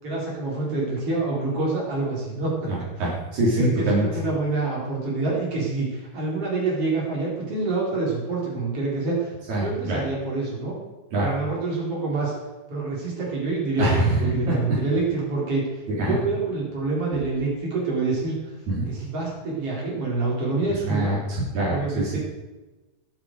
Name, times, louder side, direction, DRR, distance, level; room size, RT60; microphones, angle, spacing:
voice 1, 0.0-2.5 3.6-9.3 9.6-10.7 11.2-12.3 12.7-18.3 18.8-21.1 21.7-22.2, right 3 dB, 50° right, -4 dB, 5.6 m, -27 dB
voice 2, 2.7-4.2 9.5-10.0 11.1-11.3 13.8-14.2 14.5-14.6 16.0-16.1 18.7-18.9 20.9-22.2, right 1 dB, 75° right, -7 dB, 4.9 m, -24 dB
22.0 x 8.8 x 4.9 m, 1.1 s
omnidirectional pair, 3.3 m